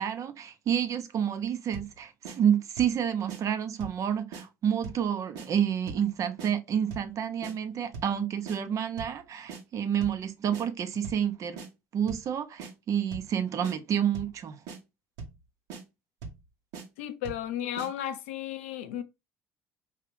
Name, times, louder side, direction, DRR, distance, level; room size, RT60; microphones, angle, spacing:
voice 1, 0.0-11.6 11.9-14.6, right 8 dB, 50° right, 0.7 m, -29 dB
sound 1, 1.7-2.0 2.2-2.4 2.8-3.0 3.3-3.4 3.8-4.0 4.3-4.4 4.8-5.1 5.3-5.5 5.9-6.1 6.4-6.5 6.9-7.1 7.4-7.5 7.9-8.2 8.5-8.6 9.0-9.2 9.5-9.6 10.0-10.2 10.5-10.6 11.0-11.3 11.6-11.7 12.1-12.3 12.6-12.7 13.1-13.3 13.6-13.8 14.1-14.4 14.7-14.8 15.2-15.4 15.7-15.8 16.2-16.4 16.7-16.9 17.2-17.5 17.8-17.9, right 4 dB, 75° right, 1.1 m, -40 dB
voice 2, 17.0-19.0, left 11 dB, 80° left, 0.5 m, -34 dB
4.9 x 2.8 x 3.3 m
hypercardioid pair, 60°, 7 cm